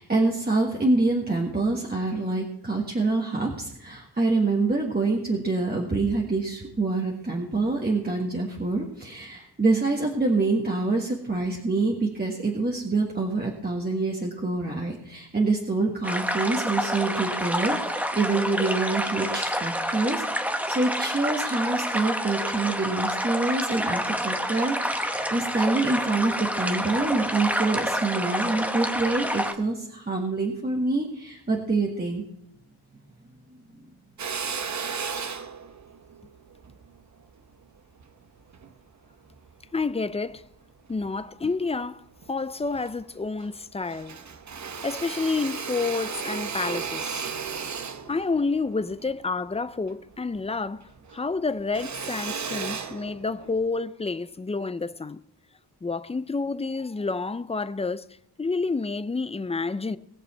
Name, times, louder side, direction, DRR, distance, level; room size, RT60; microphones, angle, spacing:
voice 1, 0.0-32.2 33.2-33.3 33.7-33.8, right 3 dB, 25° right, 1.5 m, -26 dB
sound 1, 16.0-29.5, equal, 5° right, 1.0 m, -28 dB
Drill, 34.2-38.7 39.3-40.5 40.9-41.8 42.2-42.3 42.6-43.6 43.8-50.5 50.8-53.7, right 6 dB, 45° right, 0.8 m, -35 dB
voice 2, 39.7-40.5 40.9-44.2 44.8-47.2 48.1-50.8 51.1-55.2 55.8-58.1 58.4-60.0, left 4 dB, 15° left, 0.4 m, -29 dB
20.0 x 6.8 x 4.4 m
wide cardioid pair, 110°, 40 cm